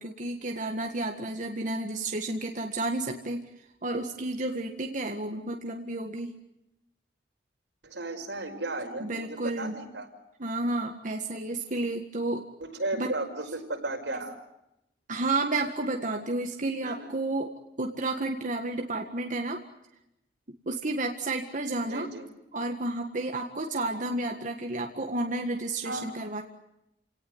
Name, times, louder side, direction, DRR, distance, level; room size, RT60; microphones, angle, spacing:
voice 1, 0.0-3.5 3.8-6.3 9.0-9.8 10.4-12.4 13.0-13.1 15.1-19.6 20.7-22.1 22.5-26.4, right 2 dB, 45° right, 3 dB, 1.8 m, -31 dB
voice 2, 7.8-10.1 12.6-14.4 16.8-17.1 21.9-22.3 25.8-26.1, right 2 dB, 85° right, 3 dB, 5.4 m, -34 dB
29.5 x 18.5 x 9.5 m, 0.88 s
head